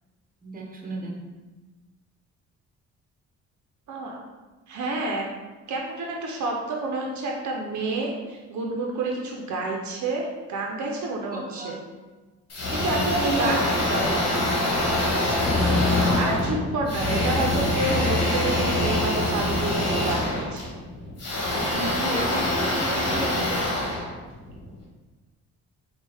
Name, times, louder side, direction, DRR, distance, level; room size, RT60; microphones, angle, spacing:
voice 1, 0.4-1.2 11.3-11.7 13.1-13.6 14.0-14.1 21.7-23.6, right 2 dB, 30° right, -1 dB, 1.0 m, -32 dB
voice 2, 3.9-4.2 4.7-5.2 5.7-11.8 12.7-13.6 13.9-14.2 16.1-20.7, right 2 dB, 70° right, -1 dB, 0.7 m, -29 dB
sound 1, 12.5-24.7, left 1 dB, 55° left, 1.4 m, -24 dB
4.6 x 2.4 x 3.4 m, 1.2 s
cardioid pair, 90°, 30 cm